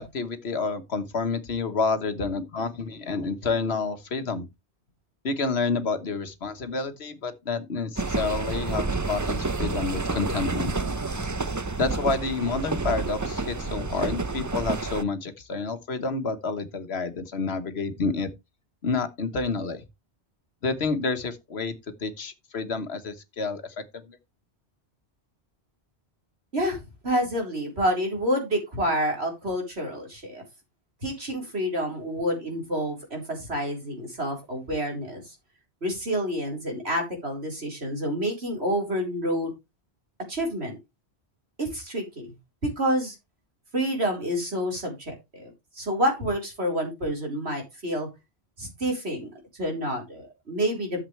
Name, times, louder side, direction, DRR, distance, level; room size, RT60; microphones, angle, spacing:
voice 1, 0.0-4.5 5.2-10.7 11.8-18.3 18.8-19.8 20.6-21.7 22.0-24.2, left 4 dB, 70° left, 1.5 m, -29 dB
sound 1, 8.0-15.0, right 3 dB, 25° right, 0.5 m, -29 dB
voice 2, 26.5-30.4 31.0-35.3 35.8-39.5 40.3-40.7 41.6-42.3 42.6-43.2 43.7-48.1 48.6-49.3 49.6-51.1, equal, 70° right, 4.5 m, -28 dB
12.0 x 7.4 x 3.3 m
omnidirectional pair, 1.1 m